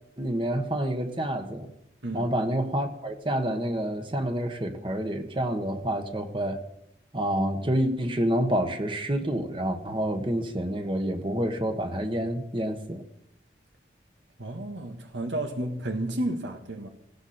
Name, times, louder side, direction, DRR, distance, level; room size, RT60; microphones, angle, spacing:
voice 1, 0.2-1.7 2.1-6.6 7.1-13.0, right 1 dB, 25° right, 1.4 m, -28 dB
voice 2, 2.0-2.3 14.4-16.9, right 1 dB, 85° right, 1.7 m, -32 dB
19.0 x 16.5 x 4.4 m
head